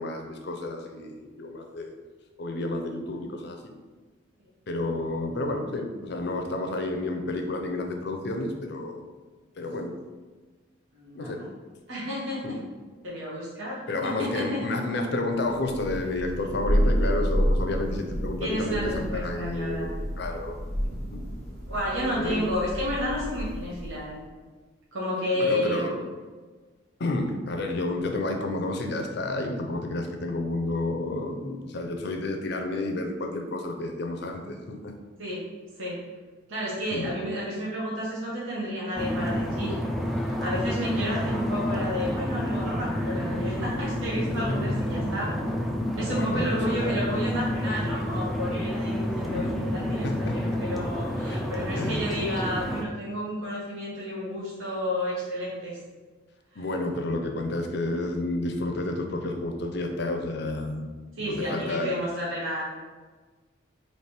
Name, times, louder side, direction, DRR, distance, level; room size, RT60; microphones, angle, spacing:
voice 1, 0.0-1.9 2.4-3.7 4.7-9.1 9.6-9.9 11.1-11.4 12.4-12.6 13.9-20.6 21.1-21.2 22.1-22.5 25.3-26.1 27.0-34.9 36.9-37.1 44.5-44.6 46.1-46.8 49.2-49.5 50.0-50.6 51.2-52.1 56.6-60.9 61.2-61.9, left 2 dB, 55° left, 4 dB, 0.5 m, -31 dB
voice 2, 10.9-11.5 11.9-12.6 13.0-14.6 18.4-20.0 21.7-24.2 24.9-25.9 35.2-35.4 35.8-36.0 36.5-39.7 40.2-45.3 46.0-55.8 56.5-56.6 61.2-62.6, equal, 80° right, -7 dB, 1.1 m, -31 dB
Thunder, 15.6-24.1, equal, 45° right, 1.5 m, -29 dB
sound 1, 39.0-52.8, equal, ahead, 0.3 m, -29 dB
3.3 x 3.0 x 4.4 m, 1.3 s
head